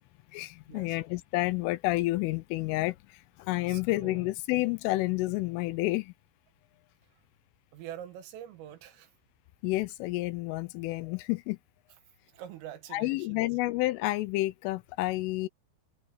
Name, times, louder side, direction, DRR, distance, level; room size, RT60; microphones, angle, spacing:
voice 1, 0.3-6.1 9.6-11.6 12.9-15.5, left 19 dB, 80° left, 3.1 m, -30 dB
voice 2, 3.6-4.3 7.7-9.1 12.3-13.4, right 11 dB, 75° right, 4.3 m, -45 dB
omnidirectional pair, 6.0 m